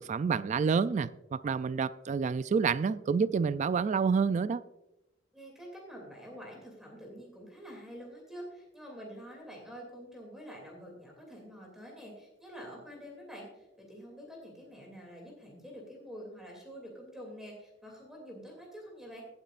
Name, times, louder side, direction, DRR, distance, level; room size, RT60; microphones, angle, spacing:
voice 1, 0.0-4.6, right 5 dB, 40° right, 15 dB, 0.3 m, -28 dB
voice 2, 5.3-19.2, equal, 5° right, -1 dB, 2.6 m, -47 dB
17.0 x 9.5 x 2.5 m, 0.92 s
head